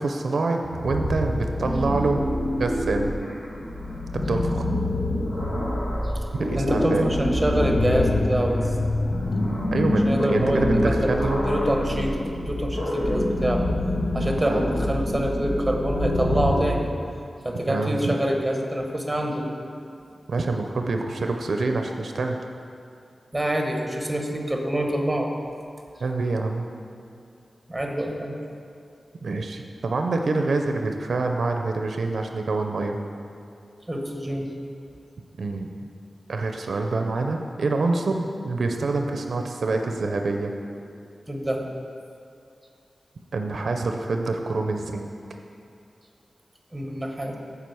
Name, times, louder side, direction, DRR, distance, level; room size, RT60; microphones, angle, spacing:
voice 1, 0.0-2.2 2.6-3.1 4.1-4.7 6.3-7.0 9.7-11.4 14.2-14.7 17.7-18.1 20.3-22.4 26.0-26.6 29.2-33.0 35.4-35.7 36.3-40.5 43.3-45.1, right 3 dB, 70° right, 4 dB, 0.5 m, -26 dB
sound 1, 0.6-16.5, left 1 dB, 75° left, 1.6 m, -26 dB
voice 2, 6.6-8.7 10.1-11.1 11.4-13.6 14.1-16.9 17.4-20.1 23.3-25.3 27.7-28.3 33.9-34.5 41.3-41.7 46.7-47.3, right 1 dB, 10° right, 2 dB, 0.9 m, -26 dB
sound 2, 7.8-10.6, left 2 dB, 45° left, 0.4 m, -28 dB
7.7 x 4.9 x 6.8 m, 2.4 s
wide cardioid pair, 125°, 0 cm